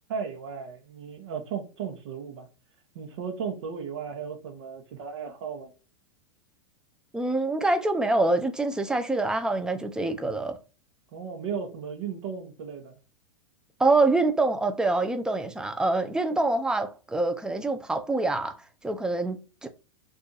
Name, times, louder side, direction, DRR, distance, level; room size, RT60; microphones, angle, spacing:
voice 1, 0.1-2.5 2.9-5.7 11.1-12.9, right 6 dB, 65° right, 0.9 m, -35 dB
voice 2, 7.1-10.6 13.8-18.6 18.8-19.7, right 2 dB, 5° right, 0.4 m, -25 dB
2.6 x 2.5 x 3.8 m
hypercardioid pair, 115°, 16 cm